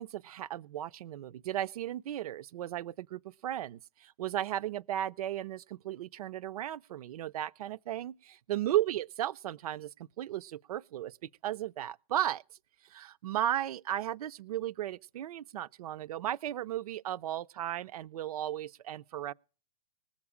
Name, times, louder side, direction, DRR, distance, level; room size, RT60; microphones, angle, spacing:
voice 1, 0.0-12.4 12.9-19.3, right 12 dB, 70° right, 0.5 m, -35 dB
20.0 x 7.3 x 4.9 m
hypercardioid pair, 130°, 20 cm